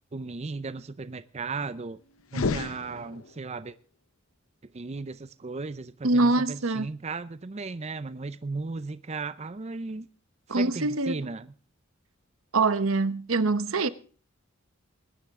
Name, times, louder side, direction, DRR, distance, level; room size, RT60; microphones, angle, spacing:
voice 1, 0.1-2.0 2.3-3.8 4.7-10.1 10.5-11.5, right 3 dB, 30° right, 0.5 m, -36 dB
sound 1, 2.2-3.6, left 3 dB, 85° left, 0.9 m, -31 dB
voice 2, 6.0-6.9 10.5-11.3 12.5-13.9, right 3 dB, 80° right, 1.0 m, -24 dB
21.5 x 10.0 x 3.6 m
head